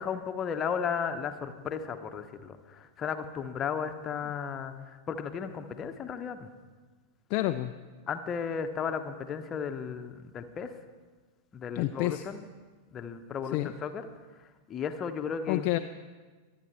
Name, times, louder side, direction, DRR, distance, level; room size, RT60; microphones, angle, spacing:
voice 1, 0.0-6.5 8.1-10.7 11.5-12.4 12.9-14.1 14.7-15.7, left 7 dB, 25° left, 8 dB, 1.0 m, -34 dB
voice 2, 7.3-7.7 11.7-12.2 13.5-13.7 15.5-15.8, left 16 dB, 45° left, 8 dB, 0.4 m, -28 dB
23.0 x 9.3 x 4.6 m, 1.4 s
figure-of-eight pair, 90°, 0 cm